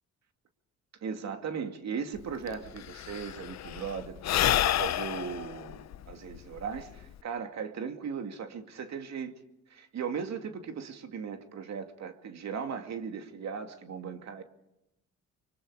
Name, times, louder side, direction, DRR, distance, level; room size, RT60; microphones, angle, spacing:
voice 1, 1.0-9.3 9.7-14.4, right 6 dB, 60° right, 6 dB, 2.5 m, -38 dB
Sigh / Breathing, 2.2-2.3 2.5-7.2, left 12 dB, 60° left, 0.7 m, -30 dB
24.5 x 24.5 x 5.0 m, 0.85 s
cardioid pair, 90°, 30 cm